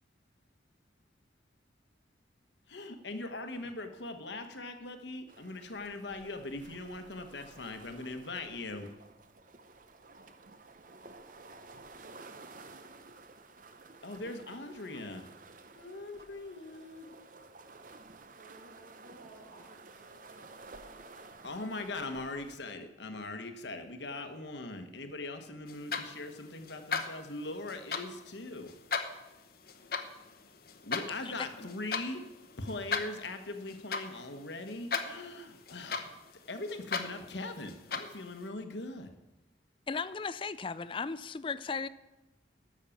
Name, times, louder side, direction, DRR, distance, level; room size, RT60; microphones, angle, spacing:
voice 1, 2.7-8.9 14.0-15.3 15.7-17.1 21.4-28.7 30.8-32.2 32.6-36.1 36.5-39.1, left 2 dB, 70° left, 7 dB, 1.2 m, -41 dB
sound 1, 5.3-22.6, right 3 dB, 45° right, 0.7 m, -53 dB
voice 2, 18.3-20.9, right 2 dB, 75° right, -3 dB, 1.7 m, -56 dB
sound 2, 25.7-38.5, left 5 dB, 55° left, 0.9 m, -39 dB
voice 3, 39.9-41.9, left 5 dB, 25° left, 15 dB, 0.3 m, -36 dB
12.5 x 6.4 x 7.1 m, 1.0 s
head